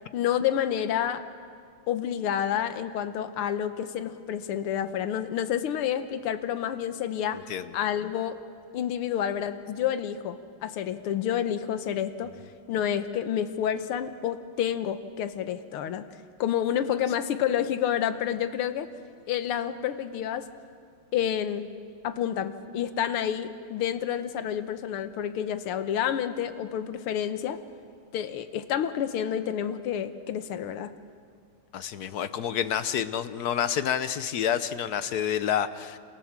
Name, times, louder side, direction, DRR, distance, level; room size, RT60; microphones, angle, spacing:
voice 1, 0.1-1.2 1.9-7.4 7.7-8.4 8.7-12.3 12.7-16.1 16.4-18.9 19.3-20.5 21.1-21.7 22.0-27.6 28.1-30.9, left 9 dB, 80° left, 10 dB, 1.9 m, -29 dB
voice 2, 7.3-7.7 31.7-36.0, left 9 dB, 60° left, 12 dB, 1.1 m, -29 dB
28.5 x 28.0 x 7.4 m, 2.2 s
omnidirectional pair, 2.4 m